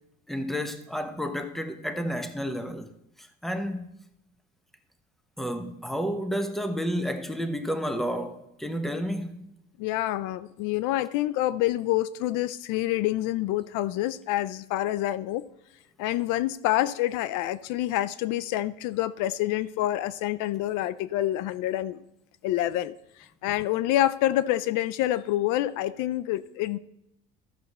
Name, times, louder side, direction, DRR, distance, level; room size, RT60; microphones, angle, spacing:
voice 1, 0.3-2.9 3.2-3.9 5.4-9.5, equal, ahead, 0.9 m, -31 dB
voice 2, 9.8-15.4 16.0-22.0 22.4-22.9 23.2-26.8, left 14 dB, 75° left, 0.5 m, -27 dB
13.5 x 6.5 x 4.2 m
cardioid pair, 105°, 31 cm